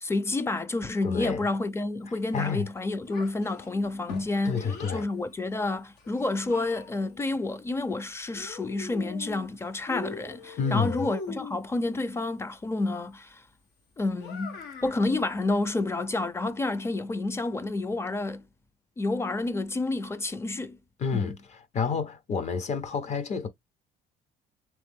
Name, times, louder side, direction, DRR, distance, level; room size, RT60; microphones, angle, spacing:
voice 1, 0.0-4.6 4.9-13.4 14.0-18.4 19.0-20.8 21.1-21.3, left 2 dB, 15° left, 0.5 m, -29 dB
voice 2, 1.0-1.4 2.3-2.7 4.4-5.1 10.6-11.0 21.0-23.5, left 5 dB, 40° left, 0.8 m, -29 dB
Child speech kid speaking, 3.1-5.1 6.0-7.2 8.3-9.5 9.9-11.6 14.1-15.0, left 5 dB, 85° left, 1.4 m, -41 dB
3.5 x 3.1 x 3.6 m
cardioid pair, 110°, 17 cm